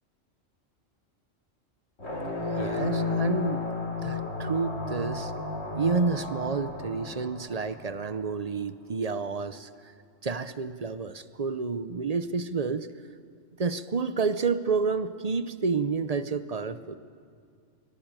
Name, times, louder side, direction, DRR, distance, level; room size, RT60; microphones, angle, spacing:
sound 1, 2.0-8.1, left 3 dB, 80° left, 3.8 m, -32 dB
voice 1, 2.6-3.6 4.0-5.3 5.7-9.7 10.2-12.9 13.6-17.0, right 4 dB, 40° right, 12 dB, 0.7 m, -29 dB
24.5 x 19.0 x 9.0 m, 2.2 s
omnidirectional pair, 1.3 m